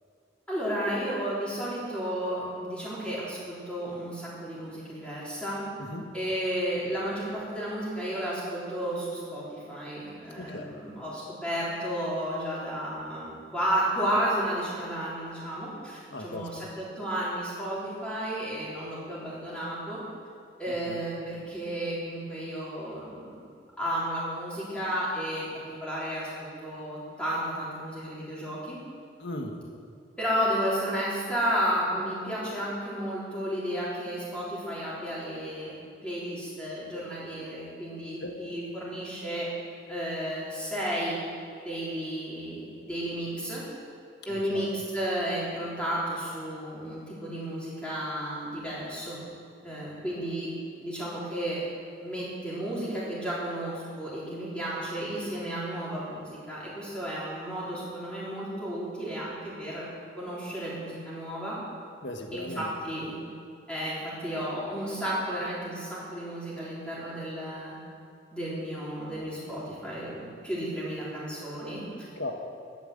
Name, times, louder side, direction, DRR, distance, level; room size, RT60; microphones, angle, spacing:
voice 1, 0.5-5.6 6.1-20.0 20.6-23.4 23.8-25.5 25.8-28.8 30.2-35.7 36.0-39.5 39.9-41.2 41.7-43.6 44.3-49.2 49.6-50.5 50.8-51.6 52.0-59.9 60.2-61.6 62.3-63.2 63.7-67.8 68.3-72.1, equal, 5° left, -8 dB, 3.7 m, -32 dB
voice 2, 10.4-10.7 16.1-16.5 20.9-21.0 29.2-29.6 38.2-38.4 44.3-44.7 62.0-62.7 72.2-72.3, left 1 dB, 65° left, 3 dB, 1.6 m, -37 dB
12.0 x 9.4 x 7.9 m, 2.4 s
head